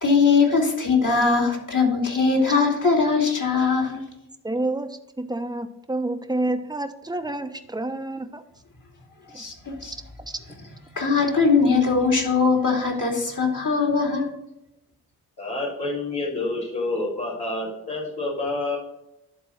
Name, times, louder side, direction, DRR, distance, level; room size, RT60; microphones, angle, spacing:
voice 1, 0.0-4.0 9.3-9.9 11.0-14.3, left 4 dB, 50° left, 0 dB, 2.8 m, -21 dB
voice 2, 4.4-8.4 9.3-9.4, right 2 dB, 10° right, 8 dB, 1.0 m, -29 dB
voice 3, 15.4-18.8, left 2 dB, 90° left, -7 dB, 3.0 m, -28 dB
11.0 x 3.8 x 5.8 m, 0.83 s
supercardioid pair, 40°, 38 cm